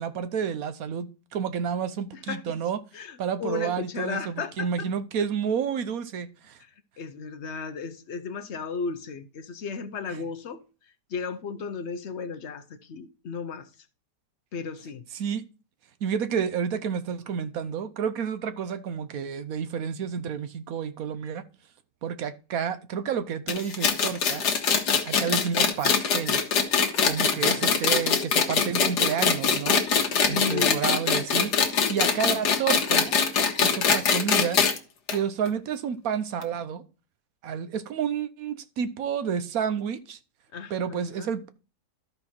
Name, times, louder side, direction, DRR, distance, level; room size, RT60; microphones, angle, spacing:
voice 1, 0.0-2.8 3.2-6.6 10.1-10.2 15.1-15.4 16.0-21.4 22.0-24.4 25.0-26.4 27.0-29.8 30.2-31.6 31.9-33.1 33.6-34.6 35.1-36.8 37.4-40.2 40.7-41.5, right 7 dB, 65° right, 1.2 m, -30 dB
voice 2, 2.9-4.9 6.6-10.6 11.1-13.7 14.5-15.0 27.4-28.1 30.3-30.9 40.5-41.3, left 5 dB, 50° left, 0.9 m, -35 dB
sound 1, 23.5-34.8 35.1-35.2 35.5-35.6 36.4-36.5, left 6 dB, 80° left, 1.7 m, -23 dB
13.0 x 4.5 x 4.2 m
omnidirectional pair, 1.7 m